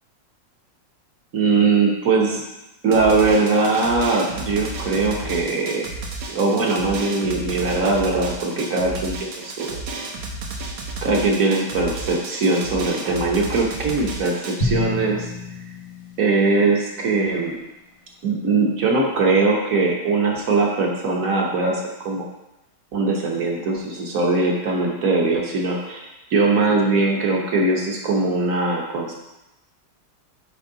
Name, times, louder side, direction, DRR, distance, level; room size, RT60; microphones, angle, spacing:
voice 1, 1.3-2.4 2.8-5.9 6.3-9.8 11.0-15.3 16.2-17.6 18.2-22.2 22.9-29.1, right 3 dB, 55° right, -1 dB, 1.3 m, -21 dB
Drum, 2.9-14.5, right 3 dB, 75° right, 1.5 m, -32 dB
Drum 2, 14.6-17.0, left 2 dB, 35° left, 0.6 m, -28 dB
9.2 x 3.4 x 3.9 m, 0.95 s
omnidirectional pair, 2.0 m